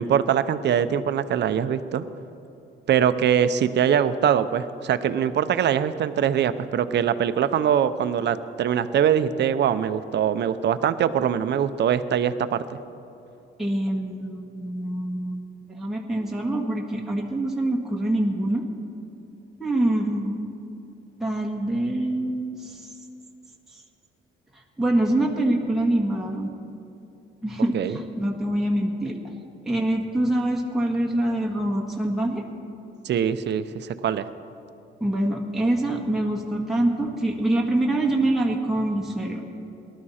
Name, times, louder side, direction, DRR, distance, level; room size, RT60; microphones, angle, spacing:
voice 1, 0.0-2.0 2.9-12.8 27.7-28.0 33.0-34.3, right 9 dB, 60° right, 12 dB, 0.7 m, -23 dB
voice 2, 13.6-18.6 19.6-20.4 21.2-22.9 24.8-26.5 27.4-29.2 29.6-32.5 35.0-39.4, right 1 dB, ahead, -2 dB, 1.6 m, -25 dB
19.0 x 12.5 x 4.3 m, 2.8 s
cardioid pair, 90°, 20 cm